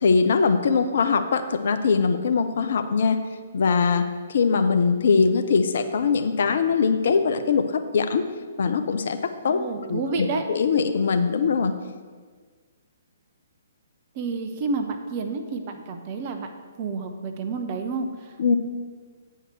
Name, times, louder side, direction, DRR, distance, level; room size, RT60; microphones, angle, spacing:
voice 1, 0.0-3.2 3.5-4.0 4.3-7.6 7.9-8.3 8.6-9.2 9.4-9.6 9.9-11.7 18.4-18.6, left 5 dB, 55° left, 8 dB, 0.6 m, -21 dB
voice 2, 9.4-10.4 14.1-16.5 16.8-18.6, right 4 dB, 35° right, 6 dB, 0.9 m, -30 dB
8.3 x 4.7 x 7.0 m, 1.5 s
figure-of-eight pair, 125°, 0 cm